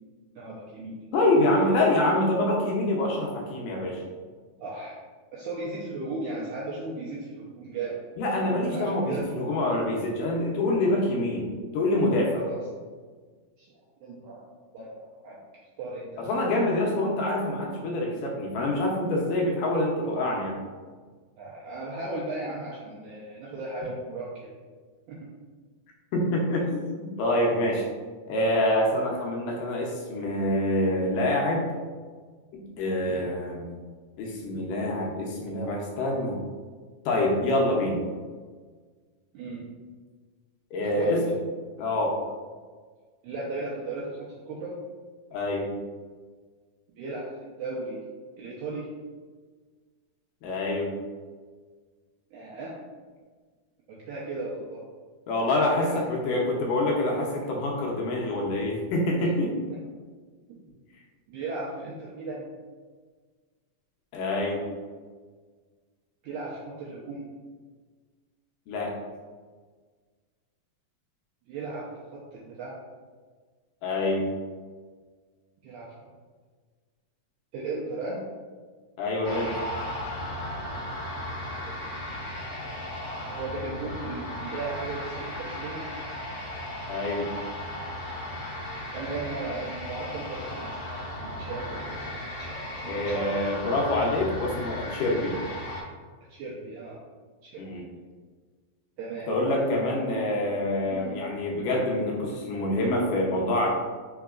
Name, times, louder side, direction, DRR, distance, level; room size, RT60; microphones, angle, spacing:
voice 1, 0.3-1.7 4.6-5.0 5.3-8.0 8.3-9.2 12.3-12.8 13.6-13.7 14.0-15.4 15.8-16.3 19.3-19.4 21.4-24.5 25.1-25.3 33.0-33.3 39.3-39.7 40.9-41.1 43.2-44.8 46.9-47.3 47.6-48.0 48.4-48.9 52.3-52.8 53.9-54.8 55.7-56.4 59.6-59.9 60.5-60.6 61.3-62.4 66.2-67.3 71.5-72.8 75.6-75.9 77.5-78.2 81.4-81.7 83.3-85.9 88.9-92.0 92.4-93.3 96.3-97.0 97.4-97.6 99.0-100.2 100.9-101.2, right 3 dB, 85° right, -5 dB, 1.7 m, -36 dB
voice 2, 1.1-4.0 8.2-11.5 11.7-12.4 16.2-20.6 26.1-27.8 28.3-31.7 32.5-33.7 34.2-36.4 37.1-38.0 40.7-41.2 41.8-42.2 45.3-45.7 50.4-50.9 55.3-59.5 64.1-64.7 68.7-69.0 73.8-74.3 79.0-79.5 86.9-87.3 92.8-95.4 97.6-97.9 99.3-103.7, left 1 dB, 75° left, -2 dB, 2.1 m, -26 dB
sound 1, 79.2-95.8, left 1 dB, 60° left, 1.5 m, -36 dB
4.9 x 3.8 x 2.3 m, 1.5 s
omnidirectional pair, 4.0 m